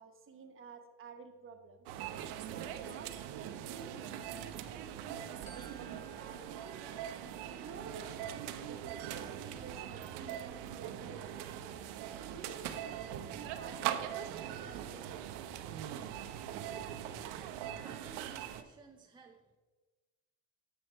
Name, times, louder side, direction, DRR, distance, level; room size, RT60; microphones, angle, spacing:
voice 1, 0.0-2.0 2.5-5.3 5.5-6.8 7.4-11.5 12.1-15.0, right 4 dB, 30° right, 6 dB, 1.0 m, -52 dB
sound 1, 1.9-18.6, right 10 dB, 70° right, 0.8 m, -41 dB
Glockenspiel, 5.5-7.9, right 1 dB, 40° left, 2.1 m, -59 dB
voice 2, 17.2-19.6, right 5 dB, 10° right, 2 dB, 0.4 m, -58 dB
8.0 x 6.9 x 4.4 m, 1.3 s
cardioid pair, 120°, 42 cm